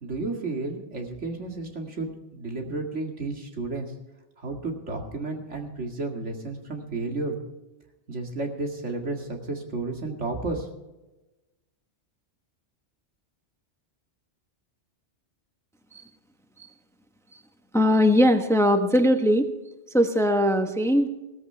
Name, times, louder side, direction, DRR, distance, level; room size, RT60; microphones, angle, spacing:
voice 1, 0.0-3.9 4.4-7.4 8.1-10.7, right 3 dB, 80° right, 2 dB, 2.5 m, -32 dB
voice 2, 17.7-19.5 19.9-21.1, equal, 5° left, 6 dB, 1.0 m, -20 dB
17.0 x 14.5 x 3.4 m, 1.0 s
omnidirectional pair, 1.2 m